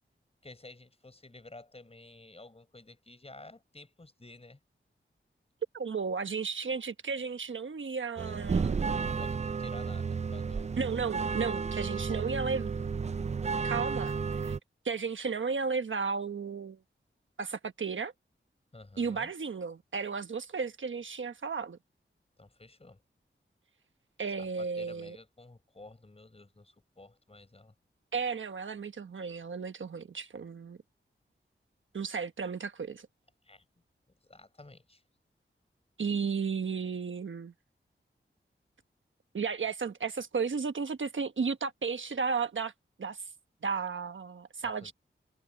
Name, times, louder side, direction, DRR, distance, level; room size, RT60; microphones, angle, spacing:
voice 1, 0.4-4.6 9.1-10.7 11.9-12.4 18.7-19.3 22.4-23.0 24.4-27.7 33.4-33.6 34.2-35.0 44.6-44.9, left 2 dB, 30° left, 5.0 m, -52 dB
voice 2, 5.7-8.9 10.8-12.8 13.6-14.1 14.4-14.5 14.8-16.8 17.4-18.1 19.0-21.8 24.2-25.2 28.1-30.8 31.9-33.1 36.0-37.5 39.3-42.7 43.0-43.2 43.6-44.9, right 5 dB, 70° right, 1.2 m, -34 dB
sound 1, 8.2-14.6, right 5 dB, 35° right, 0.4 m, -32 dB
wide cardioid pair, 90°, 21 cm